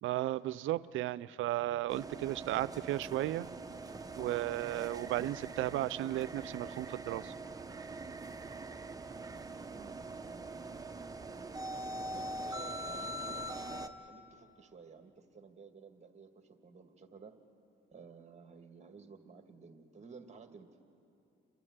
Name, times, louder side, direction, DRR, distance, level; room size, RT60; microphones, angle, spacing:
voice 1, 0.0-3.5 4.2-7.3, right 15 dB, 85° right, 17 dB, 0.5 m, -34 dB
sound 1, 1.9-13.9, right 2 dB, 20° right, 1.0 m, -43 dB
voice 2, 9.7-10.0 11.7-17.4 17.9-20.7, right 5 dB, 35° right, 6 dB, 2.0 m, -54 dB
29.5 x 12.5 x 9.5 m, 2.7 s
cardioid pair, 90°, 20 cm